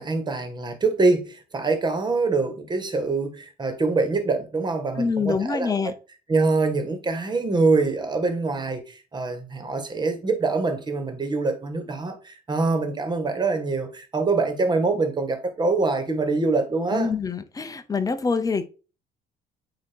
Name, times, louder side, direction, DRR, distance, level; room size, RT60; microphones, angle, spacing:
voice 1, 0.0-5.9 6.3-17.1, right 3 dB, 25° right, 1.7 m, -24 dB
voice 2, 5.0-5.9 16.9-18.7, left 5 dB, 20° left, 0.7 m, -25 dB
8.8 x 3.0 x 4.5 m
cardioid pair, 110°, 17 cm